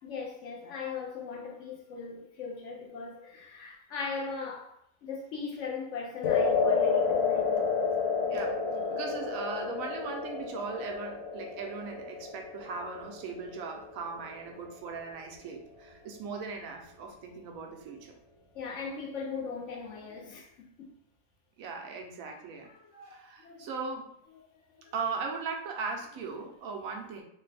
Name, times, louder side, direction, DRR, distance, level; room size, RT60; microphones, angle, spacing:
voice 1, 0.0-4.7 5.0-7.7 8.7-9.0 18.5-20.5 20.8-20.9 22.6-23.2 23.4-23.7 24.8-24.9, left 5 dB, 65° left, 0.8 m, -39 dB
sound 1, 6.2-14.6, left 5 dB, 90° left, 1.1 m, -30 dB
voice 2, 8.2-8.6 8.9-18.2 21.6-22.7 23.0-24.2 24.9-27.2, right 4 dB, 75° right, 1.0 m, -38 dB
3.3 x 2.2 x 3.2 m
omnidirectional pair, 1.5 m